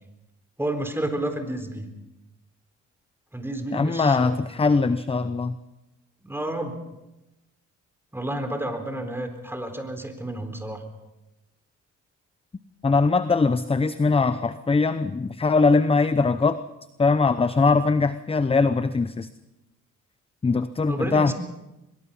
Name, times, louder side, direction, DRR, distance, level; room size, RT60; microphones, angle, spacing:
voice 1, 0.6-1.9 3.3-4.4 6.2-6.8 8.1-10.8 20.9-21.3, right 1 dB, 10° right, 6 dB, 4.0 m, -30 dB
voice 2, 3.7-5.6 12.8-16.6 17.0-19.3 20.4-21.3, left 4 dB, 20° left, 13 dB, 0.8 m, -21 dB
23.0 x 22.0 x 5.6 m, 0.97 s
cardioid pair, 90°, 30 cm